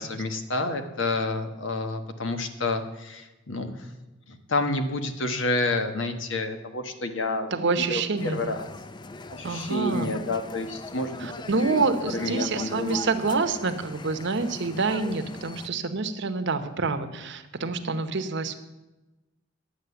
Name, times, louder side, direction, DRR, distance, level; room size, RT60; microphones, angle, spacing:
voice 1, 0.0-3.9 4.3-7.5 7.8-8.6 9.3-11.3 11.7-11.8 12.1-13.0, left 2 dB, 70° left, 7 dB, 1.2 m, -29 dB
voice 2, 7.5-8.6 9.4-10.1 11.2-18.5, right 4 dB, 65° right, 9 dB, 0.9 m, -27 dB
sound 1, 8.2-15.7, left 3 dB, 25° left, 0.4 m, -41 dB
10.5 x 8.1 x 6.9 m, 1.1 s
head